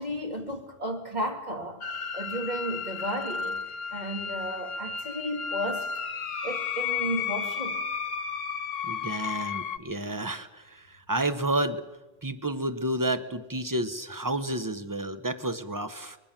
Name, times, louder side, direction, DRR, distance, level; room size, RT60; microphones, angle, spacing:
voice 1, 0.0-1.8 2.1-3.6 3.9-5.9 6.4-7.8, equal, 30° right, 2 dB, 3.1 m, -33 dB
sound 1, 1.8-9.8, left 6 dB, 65° left, 1.4 m, -33 dB
voice 2, 8.8-11.8 12.2-16.2, right 1 dB, 15° right, 10 dB, 1.1 m, -30 dB
23.5 x 21.5 x 7.5 m, 1.1 s
omnidirectional pair, 1.4 m